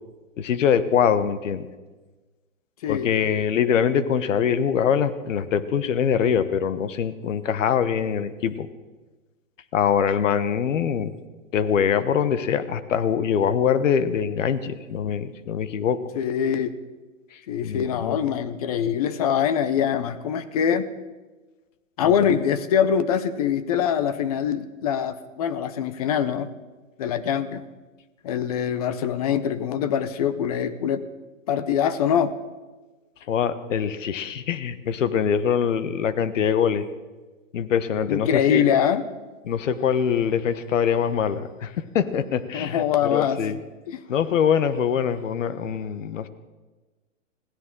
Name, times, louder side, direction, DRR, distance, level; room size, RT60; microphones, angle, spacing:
voice 1, 0.4-1.7 2.9-8.7 9.7-11.1 11.5-16.0 17.3-18.2 22.0-22.1 33.3-36.9 37.5-38.7 39.4-43.6 44.1-46.3, left 8 dB, 70° left, 13 dB, 1.2 m, -23 dB
voice 2, 16.2-16.7 17.5-20.9 22.0-26.5 27.0-27.6 28.2-31.0 31.5-32.3 38.1-39.0 42.5-43.4 43.9-44.0, left 8 dB, 30° left, 14 dB, 0.6 m, -23 dB
20.5 x 16.0 x 3.8 m, 1.2 s
hypercardioid pair, 160°, 39 cm